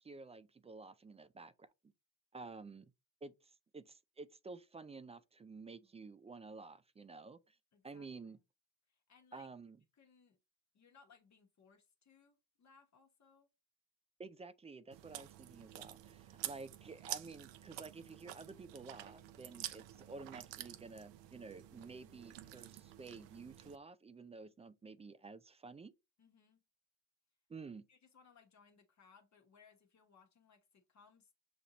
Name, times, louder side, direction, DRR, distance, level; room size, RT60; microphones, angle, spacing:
voice 1, 0.0-1.7 2.3-2.9 3.2-7.6 7.8-8.4 9.3-9.8 14.2-25.9 27.5-27.8, right 4 dB, 15° right, 0.3 m, -51 dB
voice 2, 7.7-8.3 8.9-9.5 9.9-10.4 10.7-13.5 26.2-26.6 27.9-31.3, left 5 dB, 40° left, 1.1 m, -66 dB
Chewing mastication, 14.9-23.8, right 13 dB, 80° right, 0.7 m, -49 dB
6.9 x 2.6 x 2.9 m
supercardioid pair, 90°, 43 cm